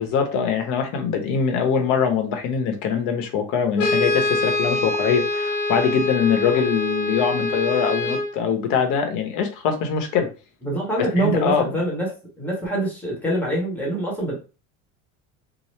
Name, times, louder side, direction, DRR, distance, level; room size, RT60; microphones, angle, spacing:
voice 1, 0.0-10.3 11.2-11.7, left 6 dB, 50° left, 5 dB, 0.8 m, -23 dB
Brass instrument, 3.8-8.3, left 2 dB, 80° left, 0.8 m, -24 dB
voice 2, 10.6-12.1 12.4-14.4, right 1 dB, 5° left, -4 dB, 1.0 m, -24 dB
2.9 x 2.0 x 3.1 m, 0.33 s
cardioid pair, 150°, 40 cm